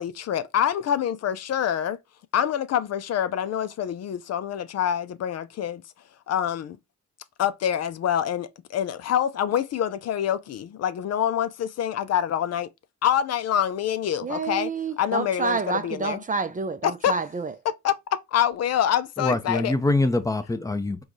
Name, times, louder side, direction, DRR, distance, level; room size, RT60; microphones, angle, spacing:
voice 1, 0.0-2.0 2.3-5.8 6.3-6.8 7.4-12.7 13.0-14.7 15.0-16.2 16.8-17.1 17.6-18.0 18.3-19.7, left 10 dB, 55° left, 0.5 m, -26 dB
voice 2, 14.2-17.5, right 4 dB, 25° right, 0.5 m, -28 dB
voice 3, 19.2-21.0, left 2 dB, 10° left, 0.7 m, -24 dB
4.6 x 2.3 x 3.9 m
cardioid pair, 90°, 30 cm